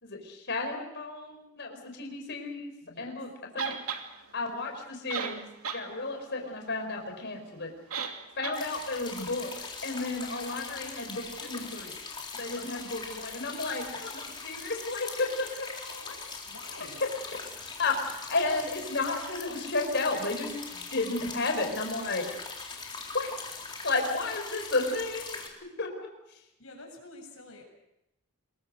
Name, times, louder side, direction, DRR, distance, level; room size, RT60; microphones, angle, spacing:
voice 1, 0.0-2.7 3.0-3.7 4.3-5.5 5.7-7.7 8.4-11.9 12.3-15.5 17.8-22.3 23.1-23.3 23.8-25.4 25.8-25.9, left 3 dB, 50° left, 3 dB, 5.2 m, -32 dB
voice 2, 2.8-3.1 12.5-12.7 15.7-16.2 16.5-17.0 26.6-27.6, left 2 dB, 70° left, 2 dB, 7.5 m, -48 dB
sound 1, 3.6-4.0 4.8-4.9 5.1-5.8 6.2-6.3 7.9-8.2 8.4-8.6, right 6 dB, 80° right, 2.7 m, -33 dB
sound 2, 8.5-25.5, left 4 dB, 20° left, 3.9 m, -41 dB
27.0 x 22.5 x 6.6 m, 0.86 s
head